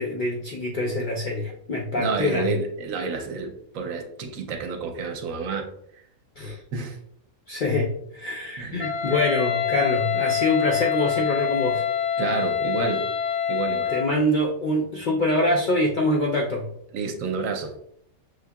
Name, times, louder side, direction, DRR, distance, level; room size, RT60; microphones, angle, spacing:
voice 1, 0.0-2.5 6.4-6.6 7.5-11.8 13.9-16.7, left 1 dB, 65° left, -2 dB, 0.4 m, -25 dB
voice 2, 1.9-5.7 6.7-7.0 7.6-7.7 8.6-8.8 12.2-13.1 13.5-13.9 16.9-17.7, right 4 dB, 75° right, 5 dB, 1.0 m, -29 dB
Wind instrument woodwind instrument, 8.8-14.2, left 8 dB, 85° left, 1.1 m, -26 dB
6.1 x 2.7 x 2.2 m, 0.71 s
omnidirectional pair, 1.4 m